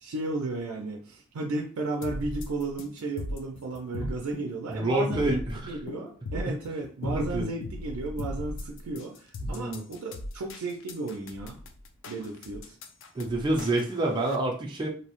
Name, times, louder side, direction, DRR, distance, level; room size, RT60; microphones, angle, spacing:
voice 1, 0.0-5.4 5.7-11.6 12.1-12.8, right 2 dB, 90° right, 1 dB, 0.4 m, -34 dB
sound 1, 2.0-14.4, left 2 dB, 60° left, 0.3 m, -38 dB
voice 2, 4.7-5.7 6.5-6.6 7.0-7.5 9.4-9.8 13.1-14.9, right 2 dB, 20° right, -2 dB, 0.4 m, -28 dB
2.7 x 2.0 x 2.9 m, 0.41 s
head